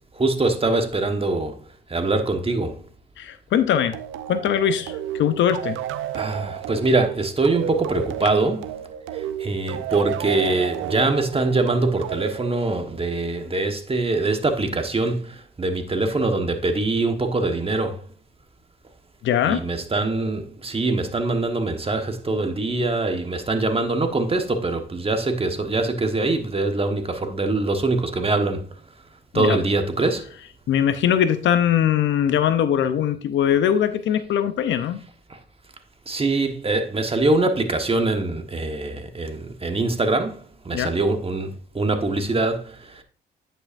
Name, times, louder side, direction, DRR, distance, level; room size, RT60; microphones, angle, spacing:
voice 1, 0.1-2.8 6.1-8.6 9.1-18.1 19.4-28.7 29.3-30.3 35.3-35.4 36.1-43.0, right 2 dB, 30° right, 1.3 m, -23 dB
voice 2, 3.2-4.0 4.3-5.8 19.2-19.6 29.3-29.6 30.7-35.0 40.7-40.9, left 9 dB, 75° left, 0.7 m, -21 dB
sound 1, 3.9-13.2, right 10 dB, 85° right, 0.5 m, -32 dB
9.5 x 5.6 x 2.5 m
supercardioid pair, 55°, 20 cm